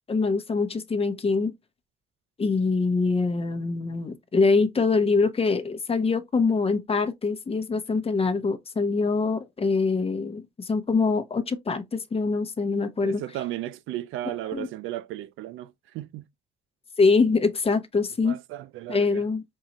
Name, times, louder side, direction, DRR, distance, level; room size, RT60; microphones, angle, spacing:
voice 1, 0.1-1.5 2.4-13.2 14.2-14.7 17.0-18.4 18.9-19.4, left 4 dB, 30° left, 0.8 m, -24 dB
voice 2, 13.0-16.2 18.2-19.2, right 14 dB, 85° right, 0.4 m, -35 dB
5.4 x 2.5 x 3.0 m
cardioid pair, 90°, 20 cm